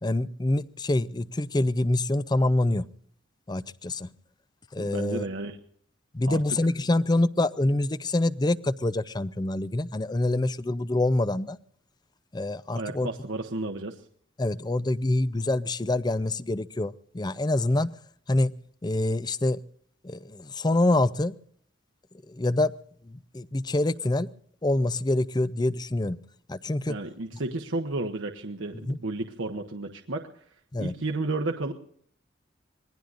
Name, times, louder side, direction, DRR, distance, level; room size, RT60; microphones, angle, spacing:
voice 1, 0.0-2.8 3.5-4.1 4.7-5.2 6.1-11.6 12.3-13.1 14.4-17.9 18.3-18.5 18.8-19.6 20.0-21.3 22.3-22.7 23.1-24.3 24.6-26.2 26.5-27.0 28.7-29.0 30.7-30.9, left 2 dB, 20° left, 16 dB, 0.5 m, -26 dB
voice 2, 4.8-5.6 6.2-6.4 12.7-14.0 26.9-30.4 30.8-31.7, right 2 dB, 80° right, 4 dB, 1.2 m, -32 dB
26.0 x 20.5 x 2.6 m, 0.63 s
head